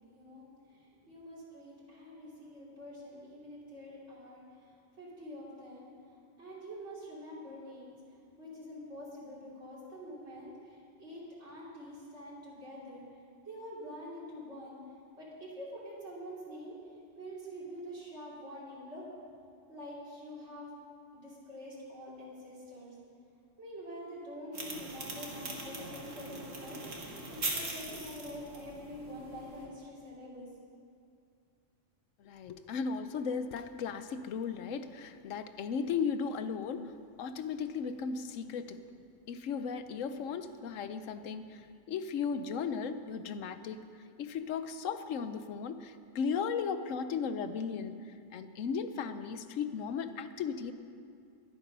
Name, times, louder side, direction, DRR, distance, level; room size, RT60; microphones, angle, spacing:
voice 1, 0.0-4.4 5.0-5.9 6.4-7.9 8.4-13.0 13.5-14.8 15.2-16.8 17.2-19.0 19.7-20.7 21.1-22.9 23.6-30.5, equal, 60° right, -7 dB, 3.6 m, -46 dB
sound 1, 24.5-29.6, right 2 dB, 80° right, 2.4 m, -41 dB
voice 2, 32.2-38.8 39.3-43.8 44.2-48.0 48.3-50.7, left 6 dB, 85° left, 11 dB, 1.1 m, -36 dB
22.5 x 8.6 x 5.4 m, 2.3 s
omnidirectional pair, 1.3 m